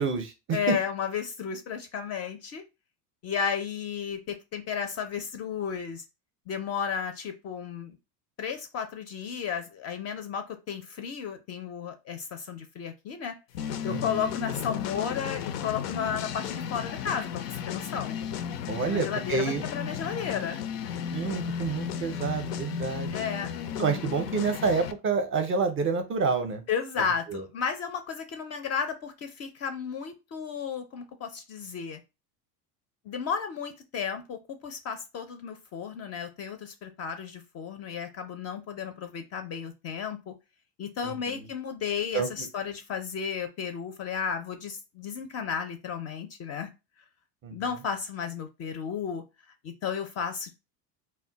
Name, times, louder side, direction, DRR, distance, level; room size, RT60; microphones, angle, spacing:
voice 1, 0.0-0.3 13.9-14.0 18.7-19.6 21.1-23.3 23.8-26.6 27.3-27.4 41.0-41.1 42.1-42.5 47.4-47.6, right 5 dB, 30° right, 6 dB, 0.5 m, -28 dB
voice 2, 0.5-2.6 3.2-6.0 6.5-8.0 8.4-13.4 13.8-18.2 18.8-20.7 23.1-23.5 26.7-32.0 33.1-40.3 40.8-46.7 47.5-49.2 49.6-50.5, left 7 dB, 35° left, 7 dB, 0.4 m, -33 dB
sound 1, 13.5-24.9, left 8 dB, 85° left, 0.5 m, -34 dB
2.2 x 2.1 x 3.8 m, 0.27 s
supercardioid pair, 100°, 46 cm